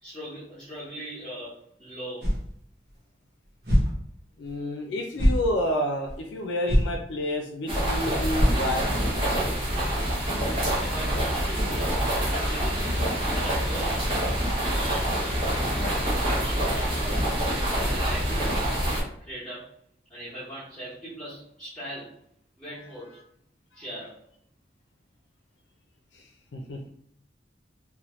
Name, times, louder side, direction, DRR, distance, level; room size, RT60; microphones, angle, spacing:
voice 1, 0.0-2.3 10.8-14.1 14.4-15.4 16.1-18.7 19.2-19.7 20.1-22.2 22.6-23.2 23.7-24.2, right 1 dB, ahead, -14 dB, 1.0 m, -40 dB
sound 1, 2.2-2.5 2.9-3.0 3.6-3.9 4.5-4.6 5.1-5.5 6.1-6.2 6.7-6.9 7.3-7.4 7.7-7.8 8.3-8.9, equal, 60° right, 0.8 m, -22 dB
voice 2, 4.4-8.9 23.7-23.8 26.1-26.9, left 1 dB, 85° left, 2 dB, 0.4 m, -30 dB
sound 2, 7.7-19.0, equal, 30° right, 0.8 m, -26 dB
2.8 x 2.1 x 3.0 m, 0.68 s
head